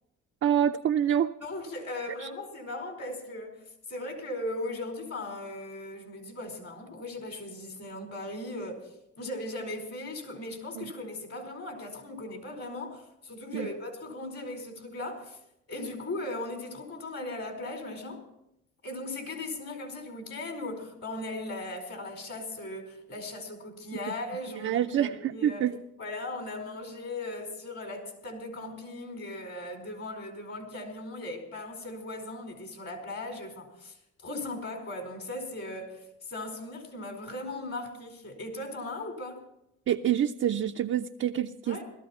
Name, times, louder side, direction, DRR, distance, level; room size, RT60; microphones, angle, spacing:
voice 1, 0.4-1.3 2.2-2.3 10.8-10.9 13.5-13.7 24.6-25.8 39.9-41.8, right 10 dB, 50° right, 4 dB, 0.6 m, -27 dB
voice 2, 1.4-8.9 9.2-15.4 15.7-18.2 18.8-25.6 26.0-34.0 34.2-39.4 41.7-41.8, left 2 dB, 50° left, 4 dB, 4.7 m, -38 dB
18.0 x 13.5 x 4.4 m, 0.79 s
cardioid pair, 90°, 30 cm